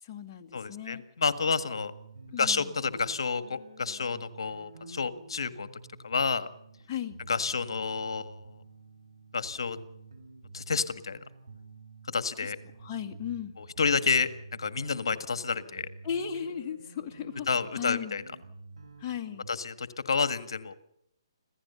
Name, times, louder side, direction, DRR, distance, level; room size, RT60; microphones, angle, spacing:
voice 1, 0.0-1.0 2.3-2.8 6.9-7.2 12.4-12.5 12.8-13.5 16.0-18.2 19.0-19.5, left 8 dB, 25° left, 2 dB, 2.2 m, -36 dB
voice 2, 0.5-1.9 2.4-5.7 6.0-6.5 7.3-8.5 9.3-9.8 10.5-11.2 12.1-12.6 13.8-14.3 14.6-15.9 17.5-18.2 19.5-20.7, left 5 dB, 70° left, 14 dB, 1.6 m, -29 dB
sound 1, 1.3-1.5 1.8-12.2 12.4-19.5, right 3 dB, 85° right, 5.8 m, -49 dB
27.0 x 16.0 x 6.9 m, 0.78 s
hypercardioid pair, 145°, 3 cm